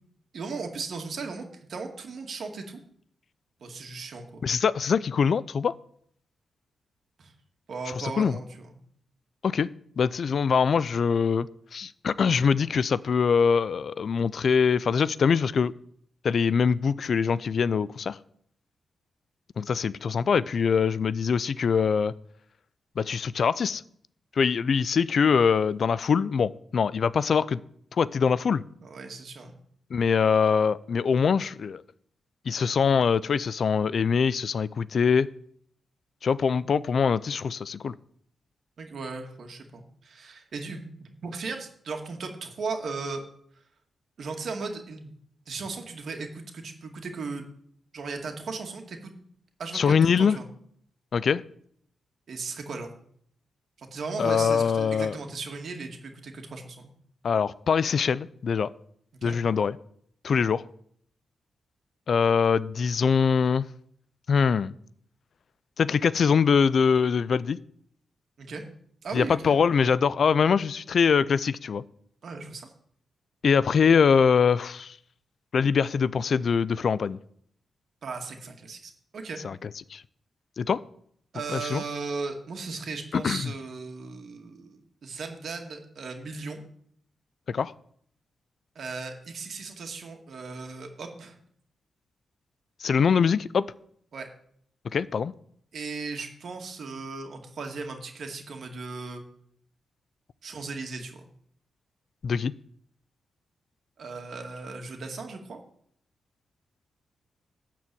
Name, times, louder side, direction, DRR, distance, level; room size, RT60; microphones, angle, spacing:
voice 1, 0.3-2.8 3.6-4.5 7.2-7.3 7.7-8.8 28.8-29.6 38.8-43.2 44.2-45.1 45.5-47.4 47.9-49.1 49.6-50.5 52.3-52.9 53.8-56.9 59.1-59.4 68.4-68.6 69.0-69.6 72.2-72.7 78.0-79.4 81.3-86.6 88.8-91.4 94.1-94.3 95.7-99.2 100.4-101.3 104.0-105.6, right 4 dB, 60° right, 3 dB, 2.2 m, -37 dB
voice 2, 4.4-5.7 8.0-8.4 9.4-9.7 10.0-15.7 16.2-18.2 19.6-22.1 23.0-23.8 24.4-27.6 28.0-28.6 29.9-31.8 32.5-35.3 36.2-37.9 49.7-50.4 51.1-51.4 54.2-55.2 57.2-58.7 59.2-59.8 60.2-60.6 62.1-63.7 64.3-64.7 65.8-67.6 69.1-71.8 73.4-75.0 75.5-77.2 79.4-80.0 80.6-80.8 81.5-81.8 83.1-83.5 87.5-87.7 92.8-93.7 94.9-95.3 102.2-102.5, left 6 dB, 55° left, 19 dB, 0.5 m, -23 dB
13.0 x 4.6 x 8.6 m, 0.65 s
cardioid pair, 115°, 0 cm